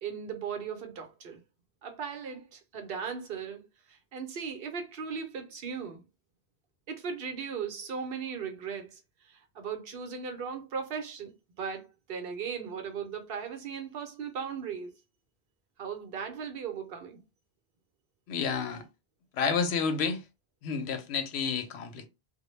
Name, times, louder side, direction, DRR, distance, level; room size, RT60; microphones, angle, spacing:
voice 1, 0.0-1.4 1.8-3.6 3.9-6.0 6.9-14.9 15.8-17.2, right 6 dB, 65° right, 0.8 m, -37 dB
voice 2, 18.3-18.8 19.4-20.2 20.6-22.1, left 5 dB, 90° left, 0.9 m, -30 dB
2.1 x 2.1 x 3.0 m
omnidirectional pair, 1.1 m